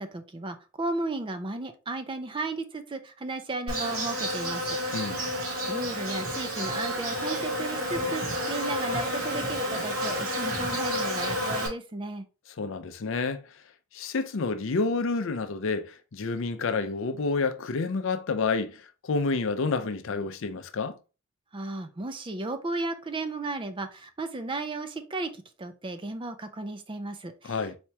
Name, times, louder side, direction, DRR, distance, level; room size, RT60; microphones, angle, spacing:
voice 1, 0.0-4.8 5.7-12.3 21.5-27.6, right 2 dB, 25° right, 0.4 m, -34 dB
Insect, 3.7-11.7, equal, 80° right, 1.8 m, -30 dB
voice 2, 12.6-13.5 13.9-21.0 27.4-27.8, left 4 dB, 65° left, 0.5 m, -29 dB
4.2 x 2.9 x 3.4 m
head